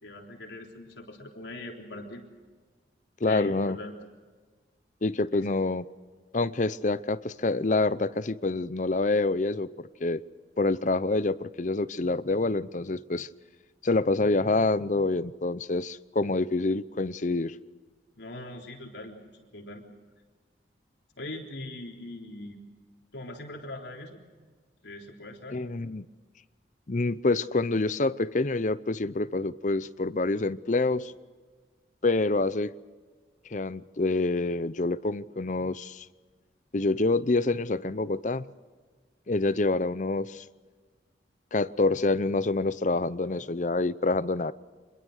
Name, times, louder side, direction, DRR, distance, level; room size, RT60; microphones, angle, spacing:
voice 1, 0.0-2.2 3.2-4.0 5.3-5.5 18.2-19.2 19.5-19.8 21.2-22.6 23.1-24.2 24.8-25.6, left 1 dB, 75° left, 2 dB, 3.7 m, -41 dB
voice 2, 3.2-3.8 5.0-5.8 6.3-10.2 10.6-13.3 13.8-17.6 25.5-26.1 26.9-31.1 32.0-32.7 33.5-36.1 36.7-38.5 39.3-40.4 41.5-44.5, left 2 dB, 45° left, 16 dB, 0.7 m, -27 dB
25.5 x 22.0 x 6.5 m, 1.5 s
head